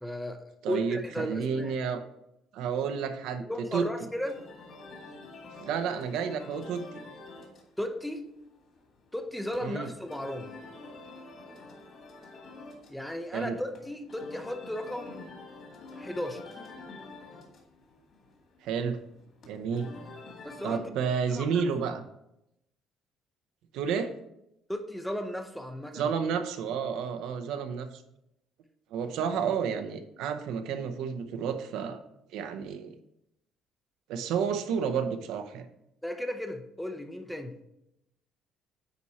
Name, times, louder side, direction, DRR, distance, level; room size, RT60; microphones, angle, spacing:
voice 1, 0.0-1.8 3.5-4.3 7.8-8.2 9.1-10.6 12.9-15.2 16.0-16.4 20.4-20.8 21.3-21.6 24.7-26.1 36.0-37.5, left 1 dB, ahead, 7 dB, 0.6 m, -35 dB
voice 2, 0.6-2.0 2.5-3.4 3.7-3.9 5.6-6.9 9.6-9.9 13.3-13.6 18.6-19.0 19.5-19.9 20.6-22.0 23.7-24.1 25.9-28.0 28.9-32.0 32.3-32.9 34.1-35.7, right 6 dB, 75° right, 8 dB, 0.7 m, -31 dB
sound 1, 4.2-20.8, left 3 dB, 45° left, 2.0 m, -48 dB
9.5 x 4.3 x 4.2 m, 0.82 s
cardioid pair, 155°, 0 cm